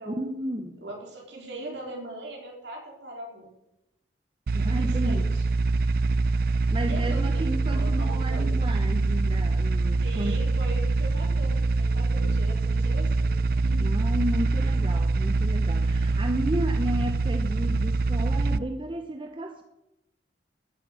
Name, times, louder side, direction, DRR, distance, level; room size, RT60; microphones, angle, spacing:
voice 1, 0.1-0.8 4.5-5.3 6.7-10.5 13.8-19.6, equal, 25° right, 5 dB, 0.8 m, -32 dB
voice 2, 0.8-3.5 4.6-5.4 6.9-8.5 10.0-14.0, right 1 dB, 65° right, 0 dB, 4.0 m, -40 dB
sound 1, 4.5-18.6, right 3 dB, 50° right, 0.4 m, -24 dB
13.0 x 7.9 x 8.0 m, 0.90 s
head